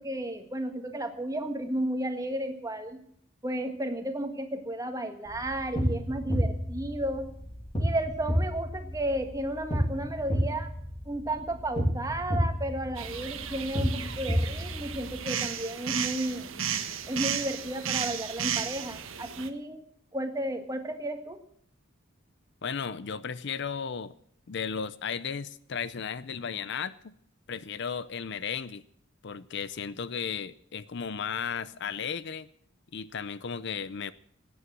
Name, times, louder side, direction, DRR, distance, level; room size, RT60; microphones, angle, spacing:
voice 1, 0.0-3.0 3.4-7.3 7.8-10.7 11.0-16.5 17.1-19.8 20.1-21.4, right 1 dB, 15° right, 6 dB, 1.6 m, -33 dB
sound 1, 5.3-15.2, equal, 30° left, 2.5 m, -31 dB
sound 2, 13.0-19.5, right 8 dB, 85° right, 1.4 m, -34 dB
voice 2, 22.6-24.1 24.5-27.1 27.5-28.8 29.2-32.5 32.9-34.1, left 6 dB, 60° left, 16 dB, 0.6 m, -35 dB
17.0 x 9.5 x 7.7 m, 0.67 s
head